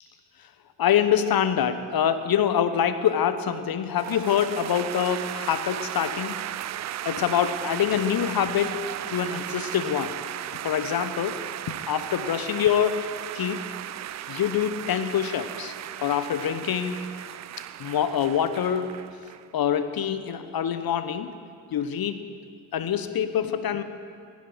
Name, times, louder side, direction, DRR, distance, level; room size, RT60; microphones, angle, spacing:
voice 1, 0.8-6.4 7.0-8.8 9.1-10.1 10.5-11.4 11.7-13.0 13.3-13.7 14.3-15.7 16.0-17.1 17.8-18.9 19.5-21.3 21.7-22.2 22.7-23.8, left 9 dB, 45° left, 11 dB, 1.0 m, -25 dB
sound 1, 3.9-19.5, right 12 dB, 35° right, 0.4 m, -36 dB
18.5 x 15.0 x 4.8 m, 2.3 s
hypercardioid pair, 45°, 49 cm